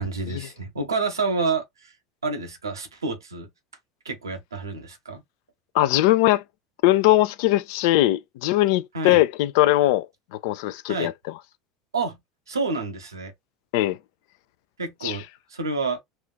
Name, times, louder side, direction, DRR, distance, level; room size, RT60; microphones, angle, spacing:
voice 1, 0.0-1.9 2.2-3.5 4.0-5.2 8.9-9.2 10.9-11.1 11.9-12.2 12.5-13.3 14.8-15.2 15.5-16.0, right 4 dB, 85° right, 0.9 m, -28 dB
voice 2, 5.7-6.4 6.8-10.1 10.3-11.1 13.7-14.0 15.0-15.2, left 16 dB, 60° left, 0.4 m, -20 dB
4.3 x 2.4 x 2.2 m
figure-of-eight pair, 75°, 2 cm